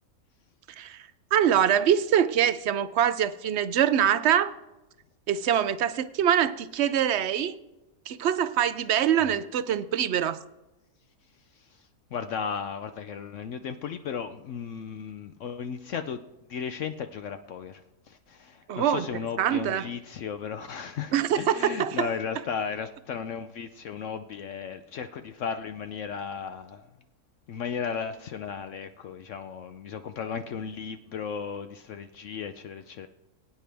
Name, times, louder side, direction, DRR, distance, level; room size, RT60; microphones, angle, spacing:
voice 1, 0.7-4.5 5.3-7.6 8.1-10.4 18.7-19.1 19.4-19.9 21.1-22.1, right 9 dB, 65° right, 14 dB, 0.7 m, -24 dB
voice 2, 11.5-16.2 16.5-26.9 27.5-33.1, left 6 dB, 65° left, 9 dB, 0.9 m, -35 dB
22.0 x 9.3 x 3.4 m, 1.0 s
omnidirectional pair, 1.5 m